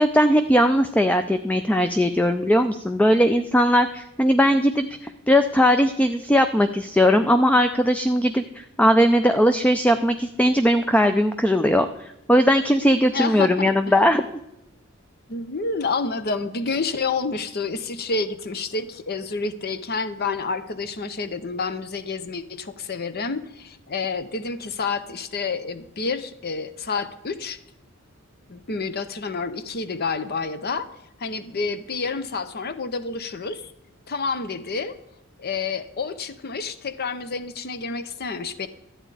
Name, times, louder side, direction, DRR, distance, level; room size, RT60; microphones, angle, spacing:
voice 1, 0.0-14.3, equal, 5° left, 9 dB, 0.4 m, -19 dB
voice 2, 13.1-13.7 15.3-27.6 28.5-33.7 34.1-34.9 35.4-38.7, left 4 dB, 50° left, 13 dB, 0.7 m, -29 dB
13.0 x 8.9 x 4.8 m, 0.86 s
head